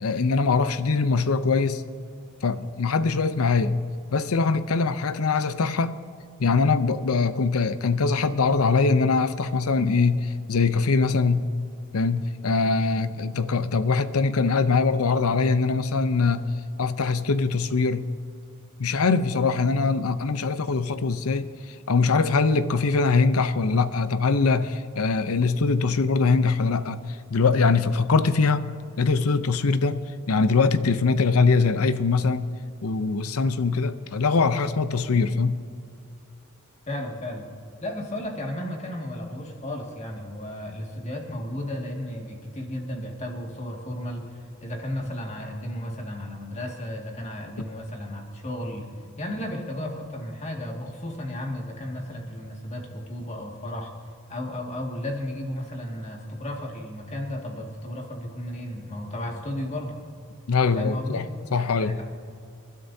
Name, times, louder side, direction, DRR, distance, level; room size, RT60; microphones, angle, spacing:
voice 1, 0.0-1.8 2.4-3.8 4.1-6.0 6.4-11.5 11.9-16.5 16.8-18.1 18.8-27.0 27.3-28.7 29.0-32.5 32.8-35.6 60.5-61.3 61.5-62.0, left 4 dB, 75° left, 13 dB, 0.6 m, -22 dB
voice 2, 36.9-37.4 37.8-53.9 54.3-60.0 60.6-61.2 61.6-62.1, left 1 dB, 30° left, 1 dB, 2.1 m, -34 dB
28.0 x 12.0 x 2.8 m, 2.5 s
head